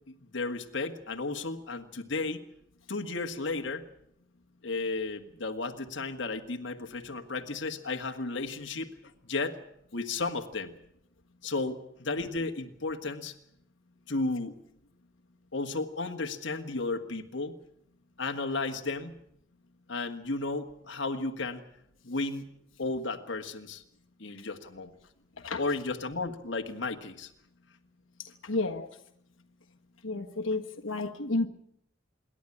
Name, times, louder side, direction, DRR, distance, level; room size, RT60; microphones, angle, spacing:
voice 1, 0.1-2.4 2.9-3.9 4.6-8.9 9.2-9.6 9.9-10.8 11.4-13.4 14.1-14.5 15.5-17.6 18.2-19.2 19.9-21.6 22.0-22.5 22.8-23.8 24.2-24.9 25.6-27.3, left 3 dB, 65° left, 1.7 m, -33 dB
voice 2, 28.4-28.9 30.0-31.5, left 2 dB, 90° left, 1.5 m, -31 dB
27.0 x 11.5 x 9.8 m
head